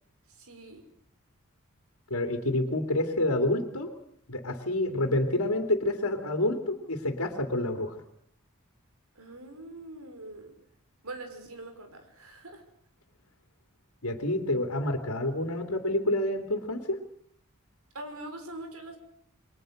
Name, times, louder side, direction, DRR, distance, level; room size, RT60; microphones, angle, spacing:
voice 1, 0.3-0.8 9.2-10.5 11.0-12.6 17.9-19.0, right 2 dB, 85° right, 7 dB, 5.3 m, -43 dB
voice 2, 2.1-3.9 4.3-8.0 14.0-17.0, left 1 dB, 90° left, 4 dB, 3.0 m, -28 dB
29.0 x 23.0 x 6.6 m, 0.66 s
head